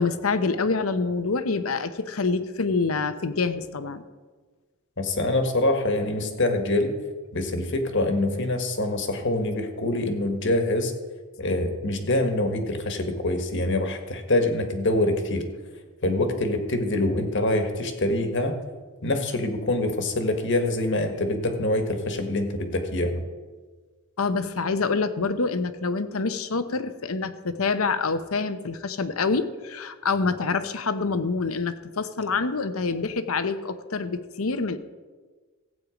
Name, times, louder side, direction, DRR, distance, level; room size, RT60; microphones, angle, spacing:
voice 1, 0.0-4.0 24.2-34.8, left 4 dB, 75° left, 11 dB, 0.8 m, -26 dB
voice 2, 5.0-6.9 7.3-10.9 11.4-15.5 16.0-18.6 19.0-23.2, left 1 dB, 55° left, 6 dB, 1.5 m, -25 dB
15.5 x 8.6 x 5.1 m, 1.4 s
head